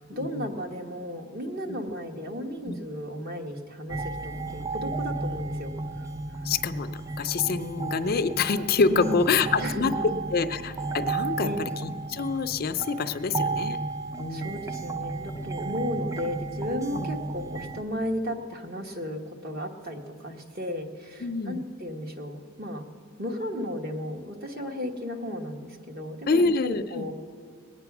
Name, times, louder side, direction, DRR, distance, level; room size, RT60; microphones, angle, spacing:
voice 1, 0.1-6.1 8.9-10.2 11.4-11.6 14.3-22.9 23.2-27.1, equal, 45° right, 3 dB, 1.4 m, -34 dB
sound 1, 3.9-17.8, right 3 dB, 15° right, 0.5 m, -33 dB
voice 2, 6.4-9.9 10.3-13.8 14.2-14.5 16.9-17.1 21.2-21.6 26.3-27.1, left 4 dB, 45° left, 10 dB, 0.5 m, -26 dB
20.5 x 9.0 x 6.0 m, 2.2 s
head